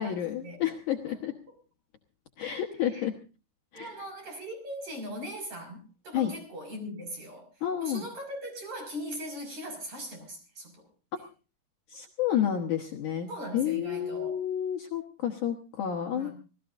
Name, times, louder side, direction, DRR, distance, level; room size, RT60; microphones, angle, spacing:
voice 1, 0.0-1.3 2.4-3.1 3.7-3.9 6.1-6.3 7.6-8.0 11.9-16.3, left 10 dB, 65° left, 2 dB, 2.2 m, -30 dB
voice 2, 3.7-10.9 13.3-14.4 16.0-16.3, equal, 40° right, 5 dB, 6.8 m, -40 dB
26.0 x 17.5 x 2.6 m, 0.35 s
omnidirectional pair, 4.7 m